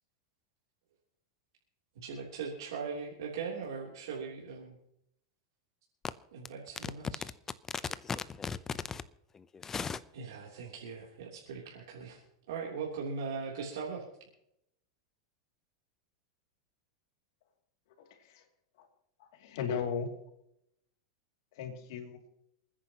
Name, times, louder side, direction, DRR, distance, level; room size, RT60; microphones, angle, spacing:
voice 1, 1.9-4.8 6.3-7.2 10.1-12.2 12.5-14.0, right 5 dB, 80° right, 3.3 m, -40 dB
voice 2, 7.7-9.0 9.3-10.0, left 5 dB, 20° left, 0.7 m, -37 dB
voice 3, 18.0-18.5 18.7-18.9 19.2-20.1 21.5-22.2, left 6 dB, 65° left, 2.7 m, -37 dB
28.0 x 10.0 x 3.0 m
supercardioid pair, 135°, 2 cm